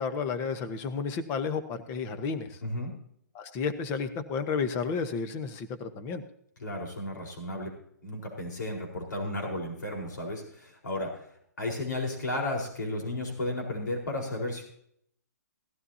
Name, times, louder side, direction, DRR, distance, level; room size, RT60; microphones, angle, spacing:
voice 1, 0.0-2.6 3.3-6.2, left 5 dB, 25° left, 9 dB, 1.0 m, -32 dB
voice 2, 2.6-2.9 6.6-7.7 8.0-11.2 11.6-14.6, left 1 dB, 85° left, 0 dB, 4.4 m, -33 dB
17.0 x 12.0 x 2.8 m, 0.68 s
hypercardioid pair, 150°, 10 cm